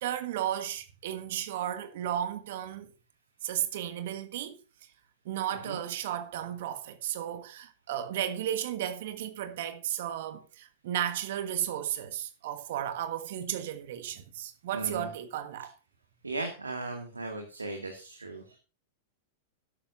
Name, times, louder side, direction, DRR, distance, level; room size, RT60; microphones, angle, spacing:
voice 1, 0.0-2.9 3.4-4.6 5.2-15.7, right 11 dB, 60° right, 1.4 m, -34 dB
voice 2, 5.5-5.8 14.7-15.1 15.6-15.7 16.2-18.6, right 2 dB, 85° right, 2.1 m, -37 dB
13.0 x 11.5 x 2.6 m
figure-of-eight pair, 95°, 0 cm